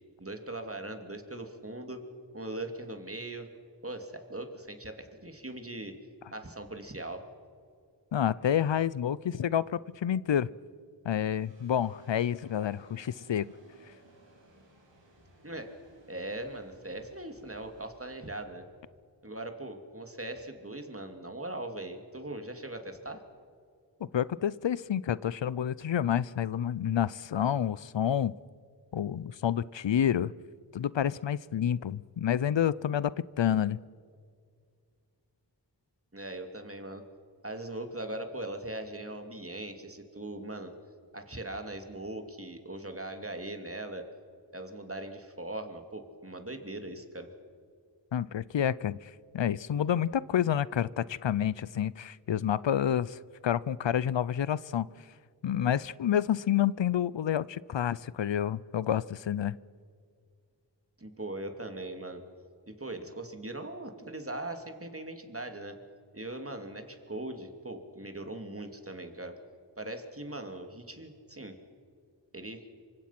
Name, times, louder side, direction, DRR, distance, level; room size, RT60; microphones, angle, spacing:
voice 1, 0.2-2.0 2.3-3.5 3.8-6.0 6.3-7.2 15.4-15.7 16.1-18.6 19.2-23.2 36.1-37.1 37.4-40.7 41.1-44.0 44.5-47.3 61.0-62.2 62.7-65.8 66.1-69.4 69.8-71.6 72.3-72.6, right 1 dB, 30° right, 5 dB, 2.9 m, -40 dB
voice 2, 8.1-10.5 11.0-13.5 24.1-28.3 28.9-30.3 30.7-33.1 33.4-33.8 48.1-54.9 55.4-59.6, left 9 dB, 90° left, 20 dB, 0.6 m, -29 dB
sound 1, 11.3-19.9, right 1 dB, 85° right, 4.2 m, -61 dB
27.0 x 25.0 x 6.0 m, 2.2 s
wide cardioid pair, 50°, 43 cm